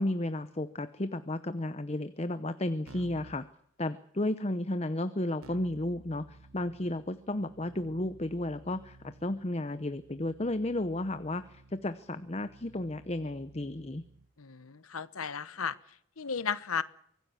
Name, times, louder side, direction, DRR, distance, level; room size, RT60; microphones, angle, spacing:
voice 1, 0.0-3.4 3.8-14.0, left 1 dB, 30° left, 11 dB, 0.8 m, -33 dB
Keyboard (musical), 2.9-3.4 5.4-14.3, right 2 dB, 85° right, 1.3 m, -55 dB
voice 2, 14.4-15.8 16.2-16.8, left 6 dB, 85° left, 15 dB, 1.2 m, -34 dB
24.5 x 17.5 x 7.1 m, 0.70 s
head